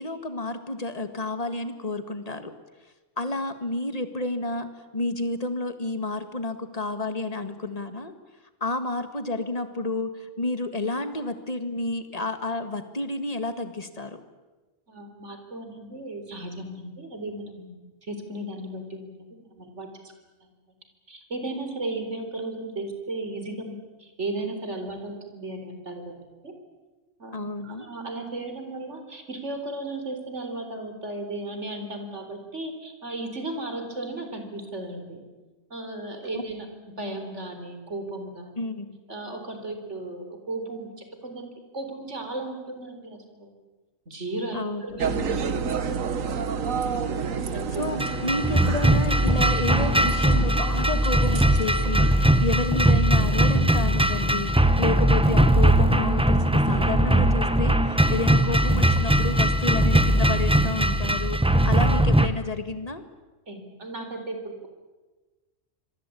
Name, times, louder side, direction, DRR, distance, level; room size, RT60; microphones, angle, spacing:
voice 1, 0.0-2.5 3.2-8.1 8.6-14.2 27.3-27.9 36.3-36.4 38.6-39.0 44.5-44.8 47.8-63.0, left 2 dB, 30° left, 9 dB, 1.9 m, -30 dB
voice 2, 14.9-17.8 18.1-19.1 19.4-19.9 21.1-26.5 27.2-35.2 35.7-38.5 39.1-41.5 41.7-43.5 44.1-46.1 47.1-47.8 48.1-48.3 63.5-64.7, right 2 dB, 60° right, 6 dB, 4.3 m, -35 dB
sound 1, 45.0-52.8, right 6 dB, 85° right, 1.5 m, -30 dB
sound 2, 48.0-62.3, right 1 dB, 5° right, 0.9 m, -20 dB
26.0 x 22.5 x 8.6 m, 1.2 s
omnidirectional pair, 1.3 m